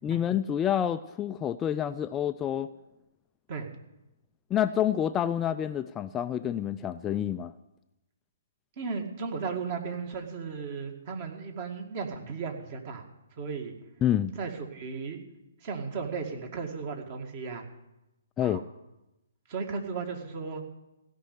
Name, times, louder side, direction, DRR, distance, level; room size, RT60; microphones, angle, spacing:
voice 1, 0.0-2.7 4.5-7.5 14.0-14.3 18.4-18.6, left 10 dB, 15° left, 9 dB, 0.4 m, -28 dB
voice 2, 8.8-13.1 13.4-13.7 14.3-15.2 15.6-17.6 18.4-18.6 19.5-20.6, right 5 dB, 40° right, 4 dB, 2.0 m, -35 dB
16.0 x 5.5 x 9.6 m, 0.94 s
figure-of-eight pair, 130°, 0 cm